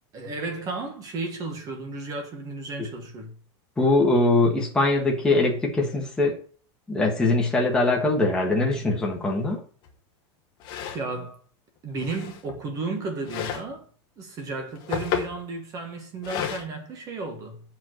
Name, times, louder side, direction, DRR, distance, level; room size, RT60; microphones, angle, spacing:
voice 1, 0.1-3.3 10.9-11.4 11.8-13.9 14.2-17.6, right 3 dB, 25° right, 1.4 m, -33 dB
voice 2, 3.8-6.4 6.9-9.6, left 2 dB, 5° left, 1.4 m, -22 dB
sound 1, 9.8-9.9 10.6-11.1 12.0-12.6 13.2-13.7 14.6-15.4 16.2-16.6, left 9 dB, 30° left, 1.2 m, -31 dB
7.2 x 4.7 x 6.4 m
supercardioid pair, 175°, 15 cm